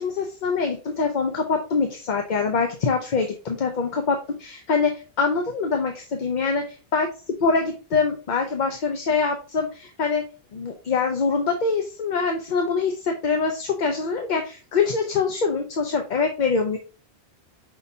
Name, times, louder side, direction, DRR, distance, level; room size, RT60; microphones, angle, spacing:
voice 1, 0.0-7.1 7.4-10.2 10.5-16.8, left 4 dB, 50° left, 4 dB, 0.7 m, -24 dB
5.5 x 3.6 x 2.7 m, 0.35 s
omnidirectional pair, 1.1 m